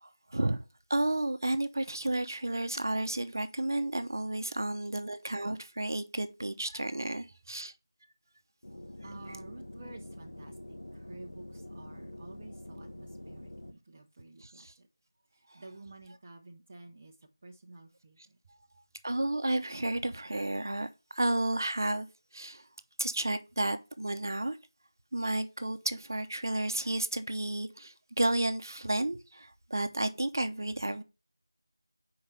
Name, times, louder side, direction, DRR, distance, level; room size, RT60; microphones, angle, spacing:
voice 1, 0.0-0.6 0.9-7.7 9.3-9.4 14.4-14.7 19.0-20.9 21.1-22.1 22.3-22.6 23.0-24.6 25.1-31.0, right 1 dB, 50° right, 0.8 m, -32 dB
sound 1, 8.6-13.7, left 1 dB, 65° left, 1.3 m, -46 dB
voice 2, 9.0-10.5 10.8-14.9 15.3-17.1 17.4-18.4, right 2 dB, 20° right, 0.7 m, -51 dB
5.1 x 4.8 x 5.7 m
figure-of-eight pair, 175°, 2 cm